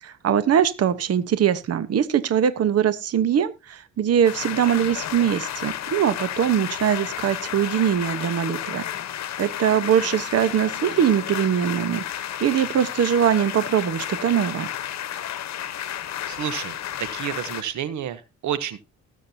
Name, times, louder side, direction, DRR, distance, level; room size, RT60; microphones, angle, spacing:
voice 1, 0.0-8.8 9.4-14.7, right 9 dB, 55° right, 13 dB, 1.0 m, -22 dB
sound 1, 4.2-17.6, left 11 dB, 60° left, 1.0 m, -32 dB
voice 2, 16.3-18.8, right 10 dB, 70° right, 13 dB, 1.1 m, -30 dB
19.0 x 7.5 x 2.8 m, 0.27 s
cardioid pair, 90°, 30 cm